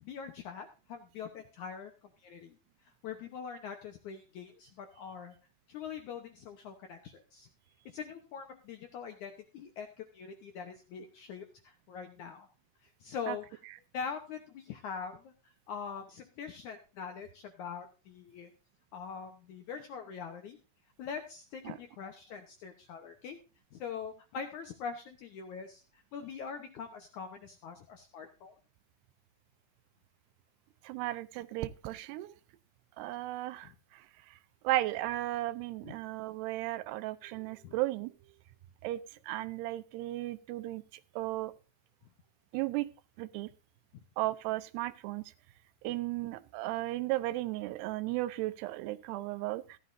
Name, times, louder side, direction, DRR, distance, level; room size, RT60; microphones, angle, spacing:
voice 1, 0.0-1.9 2.2-2.5 3.0-5.3 5.7-7.5 7.9-12.5 13.0-13.6 13.9-15.3 15.7-18.5 18.9-20.6 21.0-23.4 23.7-28.6 37.6-37.7, left 6 dB, 80° left, 5 dB, 1.7 m, -43 dB
voice 2, 30.8-32.4 33.0-34.4 34.6-38.1 38.8-41.5 42.5-42.9 43.2-43.5 44.2-45.3 45.8-49.8, right 17 dB, 80° right, 14 dB, 2.7 m, -35 dB
15.5 x 11.5 x 2.6 m, 0.32 s
omnidirectional pair, 4.8 m